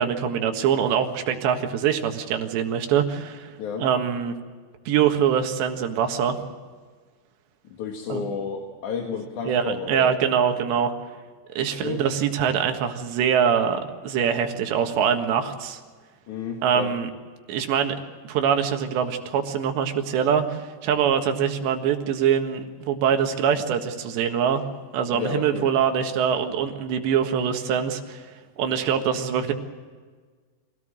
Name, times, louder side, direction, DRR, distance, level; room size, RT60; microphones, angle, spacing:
voice 1, 0.0-3.5 3.8-4.4 4.9-6.4 8.1-8.3 9.5-10.9 11.6-15.8 16.6-17.1 17.5-18.0 18.3-24.6 24.9-28.3 28.6-29.5, right 8 dB, 90° right, 5 dB, 3.9 m, -23 dB
voice 2, 7.7-10.1 11.8-12.0 16.3-17.0 25.1-25.7, left 6 dB, 55° left, 2 dB, 2.7 m, -31 dB
25.0 x 17.5 x 7.7 m, 1.5 s
omnidirectional pair, 4.9 m